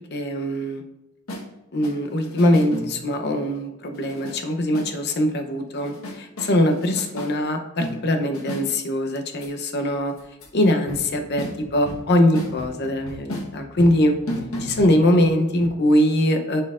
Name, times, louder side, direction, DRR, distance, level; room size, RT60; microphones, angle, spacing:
voice 1, 0.1-0.8 1.7-10.1 10.5-11.4 11.7-14.1 14.6-16.6, left 1 dB, 50° left, 5 dB, 0.7 m, -22 dB
sound 1, 1.3-1.5 1.8-3.2 3.9-4.4 4.7-4.9 5.8-7.3 7.8-8.7 9.4-9.5 10.2-10.6 10.9-15.3 15.6-15.7, equal, 70° left, 1.2 m, -34 dB
10.5 x 4.4 x 2.5 m, 0.95 s
head